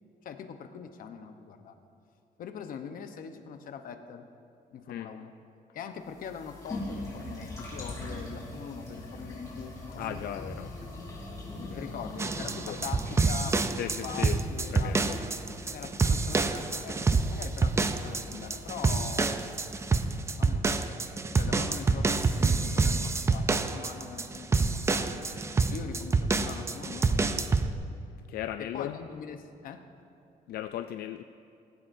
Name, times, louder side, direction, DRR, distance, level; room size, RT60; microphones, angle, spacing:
voice 1, 0.2-1.8 2.4-4.3 4.7-5.3 5.7-10.0 10.4-10.5 10.8-10.9 11.6-15.0 15.7-19.7 20.4-21.0 21.3-25.3 25.7-27.7 28.6-29.9, left 7 dB, 65° left, 7 dB, 0.9 m, -42 dB
sound 1, 6.0-20.3, left 1 dB, 20° left, 3.6 m, -42 dB
voice 2, 10.0-10.7 11.6-11.8 12.7-12.8 13.7-14.4 14.7-15.2 28.3-29.0 30.5-31.2, left 11 dB, 85° left, 9 dB, 0.4 m, -37 dB
sound 2, 12.2-27.7, right 4 dB, 15° right, 0.4 m, -27 dB
18.0 x 16.5 x 2.7 m, 2.7 s
cardioid pair, 170°, 16 cm